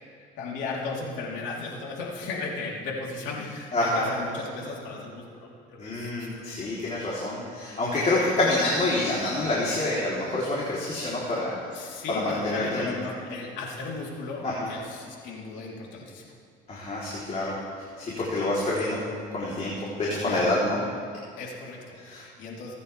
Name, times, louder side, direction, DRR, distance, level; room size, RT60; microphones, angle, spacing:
voice 1, 0.2-6.5 8.2-8.3 11.7-16.3 20.2-20.6 21.4-22.7, left 3 dB, 70° left, -3 dB, 3.7 m, -36 dB
voice 2, 3.7-4.1 5.8-11.6 12.1-12.9 14.4-14.7 16.7-17.6 18.0-19.0 19.3-20.8 22.1-22.2, left 2 dB, 35° left, -6 dB, 3.6 m, -27 dB
25.5 x 9.9 x 3.5 m, 2.4 s
supercardioid pair, 80°, 19 cm